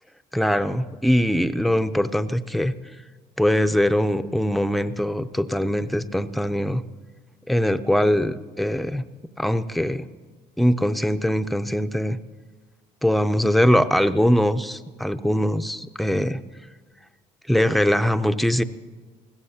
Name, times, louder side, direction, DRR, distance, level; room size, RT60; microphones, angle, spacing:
voice 1, 0.3-2.7 3.4-6.8 7.5-9.0 9.4-10.1 10.6-12.2 13.0-16.4 17.5-18.6, equal, ahead, 11 dB, 0.6 m, -22 dB
20.5 x 16.0 x 2.8 m, 1.4 s
supercardioid pair, 70°, 19 cm